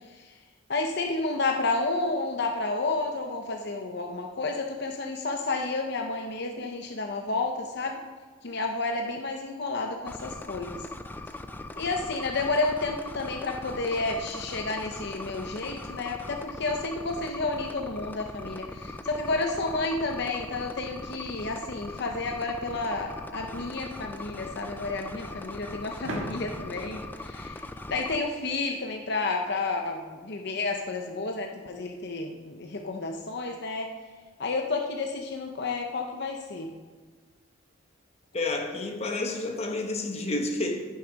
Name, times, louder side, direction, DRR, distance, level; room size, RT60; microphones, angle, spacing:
voice 1, 0.7-8.0 8.4-10.9 11.8-33.9 34.4-36.7, left 3 dB, 55° left, 0.7 m, -31 dB
sound 1, 10.1-28.2, left 2 dB, 10° left, 0.3 m, -40 dB
sound 2, 26.0-28.7, right 1 dB, 60° right, 1.8 m, -40 dB
voice 2, 38.3-40.8, left 2 dB, 30° left, 1.0 m, -30 dB
11.0 x 6.9 x 5.2 m
head